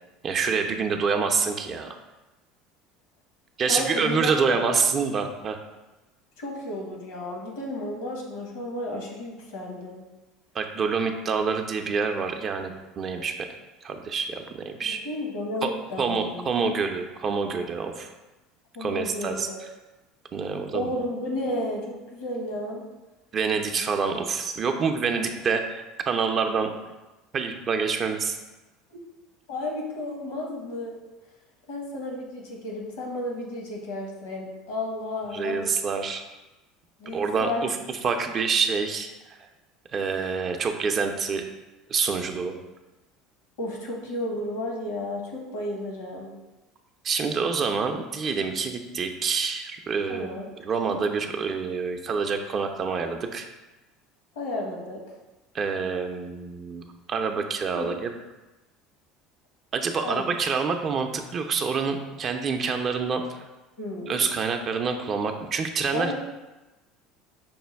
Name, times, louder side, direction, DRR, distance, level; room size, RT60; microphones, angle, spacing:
voice 1, 0.2-2.0 3.6-5.6 10.5-13.5 13.8-15.0 15.6-15.7 16.0-18.1 18.8-19.5 20.3-20.9 23.3-26.7 27.3-28.4 35.3-36.2 37.1-39.1 39.9-41.4 41.9-42.5 47.0-50.3 50.6-53.5 55.5-56.8 57.1-58.1 59.7-63.4 64.1-66.1, right 5 dB, 40° right, 5 dB, 0.4 m, -27 dB
voice 2, 3.7-4.9 6.4-10.0 14.9-16.5 18.7-19.6 20.7-22.8 28.9-29.0 29.5-30.9 31.7-35.7 37.0-37.7 43.6-46.3 50.1-50.5 54.4-55.0 57.7-58.0 60.0-60.3 63.8-64.3 65.9-66.1, left 1 dB, 75° left, -1 dB, 1.0 m, -32 dB
5.4 x 2.2 x 3.3 m, 1.1 s
hypercardioid pair, 75°, 0 cm